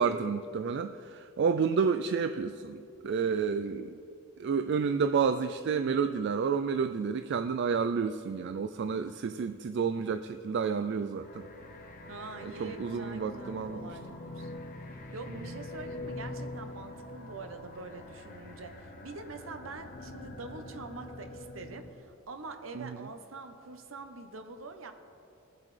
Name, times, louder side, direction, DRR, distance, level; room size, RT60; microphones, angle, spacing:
voice 1, 0.0-3.9 4.4-11.5 12.4-13.9 22.8-23.0, right 6 dB, 55° right, 9 dB, 0.3 m, -30 dB
sound 1, 11.2-22.0, left 2 dB, 40° left, 0.9 m, -44 dB
voice 2, 12.1-14.5 14.9-24.9, right 3 dB, 75° right, 7 dB, 0.9 m, -45 dB
21.0 x 7.3 x 3.3 m, 2.6 s
head